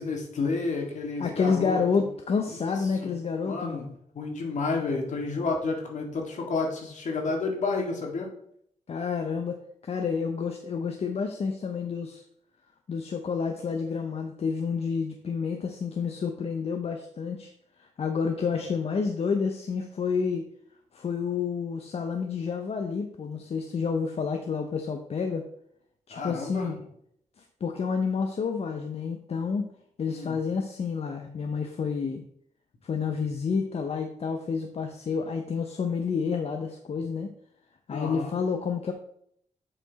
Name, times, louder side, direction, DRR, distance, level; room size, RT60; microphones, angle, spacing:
voice 1, 0.0-1.8 2.5-2.8 3.0-3.1 3.5-3.9 4.1-8.3 26.1-26.7 30.1-30.4 37.9-38.3, left 3 dB, 65° left, 1 dB, 1.8 m, -30 dB
voice 2, 1.2-3.9 8.9-12.2 12.9-17.5 17.8-20.5 20.9-25.5 26.1-26.8 27.6-29.7 30.0-32.2 32.8-37.3 37.9-38.9, left 5 dB, 50° left, 5 dB, 0.7 m, -29 dB
7.6 x 4.4 x 4.0 m, 0.69 s
cardioid pair, 90°, 13 cm